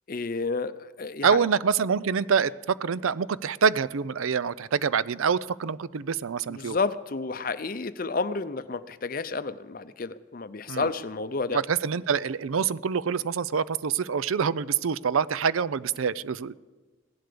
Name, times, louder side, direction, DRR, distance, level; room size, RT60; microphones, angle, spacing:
voice 1, 0.1-1.4 6.5-11.6, left 4 dB, 45° left, 13 dB, 0.6 m, -31 dB
voice 2, 1.2-2.5 2.8-6.8 10.7-10.9 11.5-16.5, right 6 dB, 85° right, 18 dB, 0.5 m, -26 dB
16.5 x 11.5 x 6.8 m, 1.3 s
head